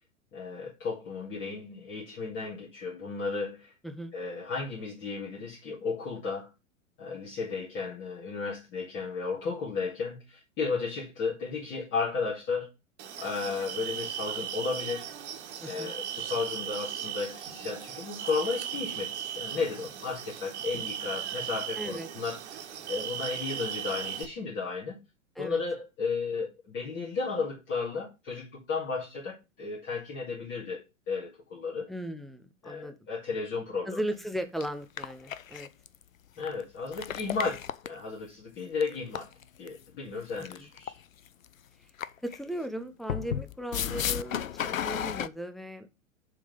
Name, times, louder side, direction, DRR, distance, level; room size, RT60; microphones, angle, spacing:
voice 1, 0.3-3.7 4.1-6.5 7.0-12.7 13.2-15.1 15.6-25.0 25.4-31.9 32.6-34.0 36.4-37.6 37.8-39.3 39.6-41.0, left 4 dB, 30° left, 2.3 m, -34 dB
sound 1, 13.0-24.2, right 10 dB, 55° right, 1.7 m, -37 dB
voice 2, 15.6-15.9 21.8-22.1 25.4-25.6 31.9-33.0 33.9-35.7 42.2-45.9, right 1 dB, ahead, 0.6 m, -37 dB
sound 2, 34.1-34.2 34.6-34.7 35.0-36.0 36.4-36.5 36.9-38.0 38.8-39.7 40.4-41.0 41.3-41.4 42.0-42.4 43.1-45.3, left 10 dB, 80° left, 0.6 m, -33 dB
7.1 x 3.8 x 6.5 m
figure-of-eight pair, 105°, 39 cm